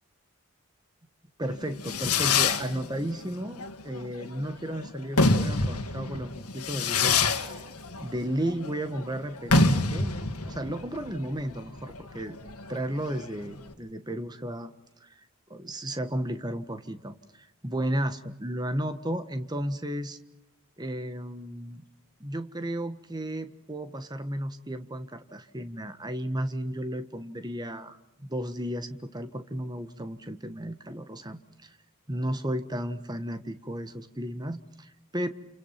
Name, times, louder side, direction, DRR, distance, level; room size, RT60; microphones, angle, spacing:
voice 1, 1.4-7.2 7.4-7.6 8.0-10.1 10.5-12.4 12.7-14.7 15.0-15.2 15.5-20.2 20.8-21.8 22.2-31.8 32.1-35.3, right 1 dB, 20° right, 9 dB, 1.4 m, -34 dB
Fireworks, 1.5-13.7, left 3 dB, 85° left, 2.1 m, -27 dB
28.5 x 28.5 x 5.9 m, 0.89 s
head